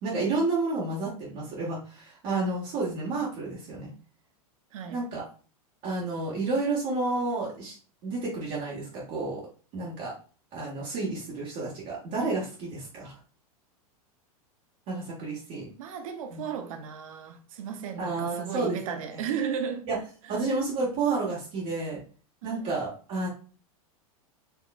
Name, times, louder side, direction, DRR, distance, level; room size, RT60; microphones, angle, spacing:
voice 1, 0.0-3.9 4.9-5.2 5.8-7.8 8.0-9.4 9.7-10.1 10.5-13.1 14.9-15.7 16.3-16.4 18.0-18.8 19.9-20.0 20.3-22.0 22.4-23.3, right 3 dB, 45° right, 1.3 m, -30 dB
voice 2, 4.7-5.0 15.8-19.9 20.2-20.4 22.4-22.6, right 7 dB, 65° right, 0.7 m, -35 dB
4.5 x 2.9 x 2.2 m
hypercardioid pair, 100°, 19 cm